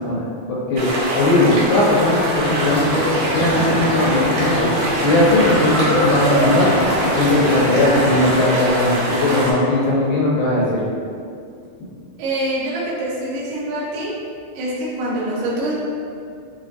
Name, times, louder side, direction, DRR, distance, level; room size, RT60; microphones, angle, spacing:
voice 1, 0.1-0.9 1.1-3.0 3.3-4.7 5.0-6.7 7.1-10.8, left 2 dB, 90° left, -7 dB, 3.1 m, -18 dB
sound 1, 0.8-9.5, right 1 dB, 75° right, 2.3 m, -23 dB
sound 2, 2.0-8.4, equal, 70° left, 2.0 m, -24 dB
Laughter, 4.9-7.5 8.0-8.1, equal, 55° right, 2.0 m, -30 dB
voice 2, 12.2-14.1 14.5-15.7, right 1 dB, 90° right, -7 dB, 2.8 m, -25 dB
7.3 x 2.5 x 2.6 m, 2.4 s
omnidirectional pair, 4.6 m